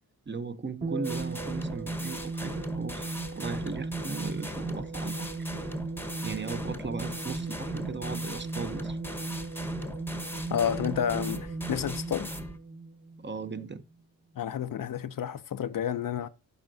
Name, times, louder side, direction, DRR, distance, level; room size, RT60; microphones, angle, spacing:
voice 1, 0.3-5.3 6.2-9.0 13.2-13.8, right 4 dB, 30° right, 0.7 m, -37 dB
sound 1, 0.8-13.6, right 3 dB, 80° right, 3.2 m, -37 dB
sound 2, 1.0-12.6, left 1 dB, 5° left, 0.9 m, -40 dB
voice 2, 10.5-12.3 14.4-16.3, left 9 dB, 60° left, 0.6 m, -30 dB
12.0 x 4.5 x 2.6 m
cardioid pair, 75°, 38 cm